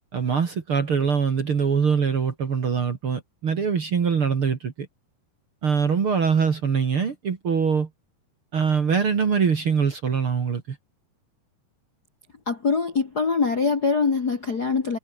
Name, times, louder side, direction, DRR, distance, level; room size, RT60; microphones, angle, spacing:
voice 1, 0.1-4.9 5.6-7.9 8.5-10.8, right 6 dB, 40° right, 2.3 m, -23 dB
voice 2, 12.4-15.0, left 4 dB, 40° left, 1.5 m, -23 dB
omnidirectional pair, 4.6 m